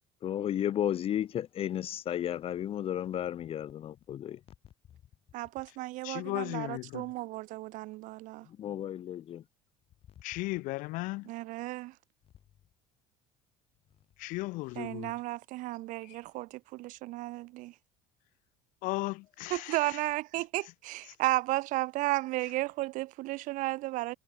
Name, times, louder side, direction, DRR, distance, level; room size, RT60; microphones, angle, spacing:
voice 1, 0.2-4.4 8.6-9.4, left 11 dB, 40° left, 1.5 m, -33 dB
voice 2, 5.3-8.5 11.3-12.0 14.8-17.7 19.5-24.1, right 19 dB, 65° right, 5.4 m, -34 dB
voice 3, 6.0-7.1 10.2-11.3 14.2-15.1 16.0-16.2 18.8-20.0, left 22 dB, 70° left, 4.9 m, -36 dB
cardioid pair, 125°, 14 cm